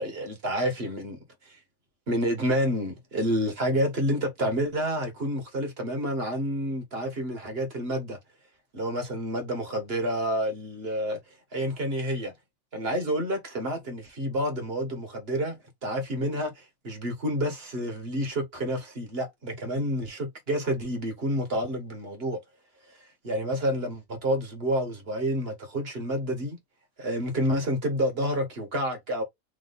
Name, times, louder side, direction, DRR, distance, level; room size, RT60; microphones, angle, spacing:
voice 1, 0.0-1.6 2.1-8.2 8.7-11.2 11.5-12.3 12.7-22.4 23.2-26.6 27.0-29.2, equal, 45° right, 1.7 m, -29 dB
3.7 x 3.0 x 4.0 m
omnidirectional pair, 1.5 m